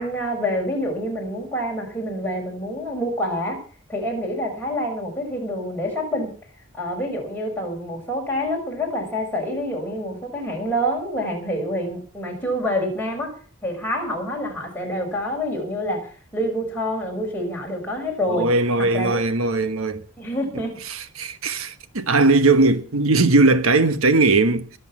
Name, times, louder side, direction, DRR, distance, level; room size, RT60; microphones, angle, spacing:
voice 1, 0.0-3.6 3.9-6.3 6.7-13.4 13.6-18.5 18.8-19.2 20.2-20.8, equal, 10° left, 5.8 m, -27 dB
voice 2, 18.3-20.0 20.5-24.8, right 3 dB, 85° right, 1.2 m, -19 dB
22.5 x 8.1 x 6.0 m
head